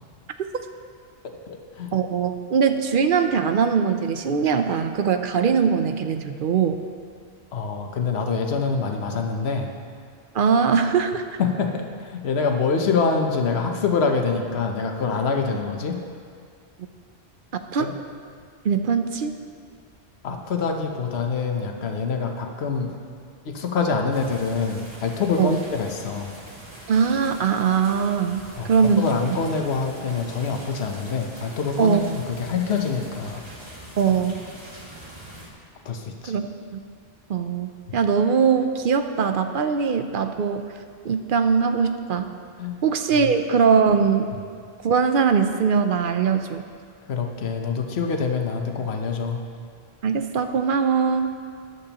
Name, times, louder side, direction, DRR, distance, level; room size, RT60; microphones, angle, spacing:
voice 1, 1.2-1.9 7.5-9.8 11.4-16.0 17.8-17.9 20.2-23.0 23.4-26.4 28.6-33.4 35.8-36.4 37.9-38.0 42.6-42.8 43.1-43.3 47.1-49.4, left 5 dB, 70° left, 3 dB, 1.2 m, -25 dB
voice 2, 1.9-6.8 10.3-11.2 17.7-17.9 18.6-19.3 25.4-25.6 26.9-29.0 31.8-32.0 34.0-34.4 36.3-36.4 36.7-36.8 37.3-40.7 41.0-42.3 42.8-44.3 44.8-46.6 50.0-51.3, right 6 dB, 60° right, 7 dB, 0.7 m, -21 dB
sound 1, 24.1-35.5, right 1 dB, 25° right, 1.7 m, -43 dB
13.5 x 11.0 x 3.0 m, 2.1 s
omnidirectional pair, 1.1 m